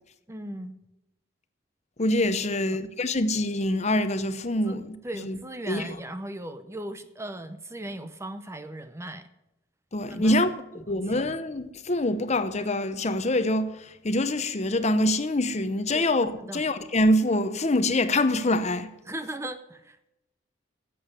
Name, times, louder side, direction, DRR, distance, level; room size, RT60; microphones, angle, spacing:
voice 1, 0.3-0.7 2.5-2.8 4.7-4.8 5.0-9.3 10.1-10.4 15.9-16.1 16.4-16.6 19.1-20.1, right 1 dB, 15° right, 0.6 m, -38 dB
voice 2, 2.0-5.4 5.7-6.0 9.9-10.5 10.7-18.9, left 1 dB, 35° left, 0.8 m, -25 dB
11.0 x 7.9 x 9.7 m
head